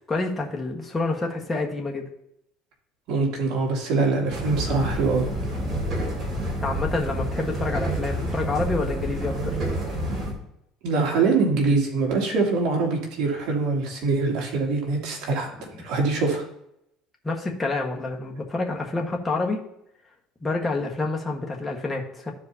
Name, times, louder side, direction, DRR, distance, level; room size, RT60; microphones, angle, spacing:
voice 1, 0.1-2.1 6.6-9.6 17.2-19.6 20.4-22.3, left 3 dB, 15° left, -1 dB, 1.5 m, -28 dB
voice 2, 3.1-5.3 10.8-15.5 15.8-16.4, right 3 dB, 70° right, -1 dB, 2.7 m, -23 dB
sound 1, 4.3-10.3, right 1 dB, 40° right, 3.5 m, -28 dB
13.5 x 4.9 x 2.8 m, 0.77 s
cardioid pair, 115°, 0 cm